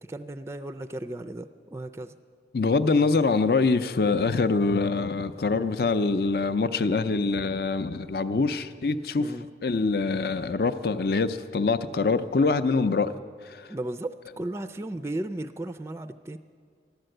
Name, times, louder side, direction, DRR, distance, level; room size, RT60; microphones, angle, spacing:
voice 1, 0.1-2.2 9.2-9.5 13.7-16.4, right 1 dB, 15° right, 9 dB, 0.4 m, -35 dB
voice 2, 2.5-9.3 9.6-13.1 13.5-13.6, left 4 dB, 60° left, 11 dB, 0.5 m, -24 dB
14.5 x 12.0 x 7.8 m, 2.1 s
head